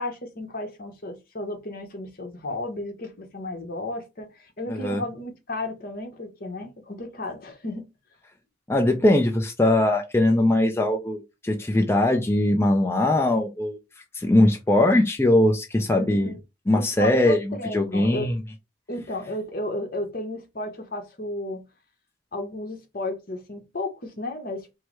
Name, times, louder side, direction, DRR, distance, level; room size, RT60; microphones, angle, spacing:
voice 1, 0.0-7.8 16.0-16.4 16.8-18.3 18.9-21.6 22.3-24.8, left 1 dB, 55° left, 1.1 m, -33 dB
voice 2, 4.7-5.0 8.7-13.8 14.1-16.3 16.7-18.4, left 1 dB, 15° left, 0.5 m, -21 dB
4.6 x 2.1 x 4.6 m
head